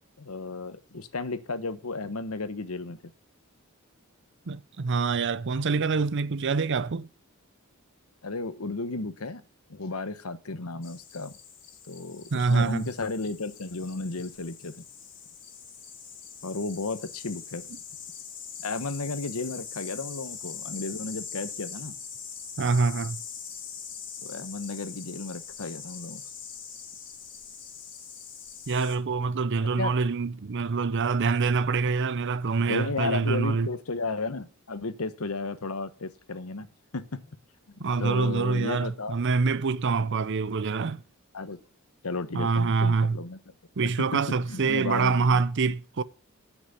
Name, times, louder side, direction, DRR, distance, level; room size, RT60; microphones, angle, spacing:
voice 1, 0.2-3.0 8.2-9.4 9.7-11.3 11.8-14.7 16.4-17.7 18.6-21.9 24.2-26.2 29.6-29.9 32.7-36.7 36.9-37.1 37.8-39.2 41.3-41.6 42.0-43.4 43.8-44.2 44.5-45.4, left 3 dB, 75° left, 1.1 m, -33 dB
voice 2, 4.5-7.1 12.3-12.9 22.6-23.2 28.7-33.7 37.8-41.0 42.3-43.2 43.8-46.0, right 4 dB, 55° right, 0.6 m, -25 dB
sound 1, 10.8-29.0, left 7 dB, 40° left, 2.5 m, -42 dB
9.8 x 6.1 x 8.4 m
head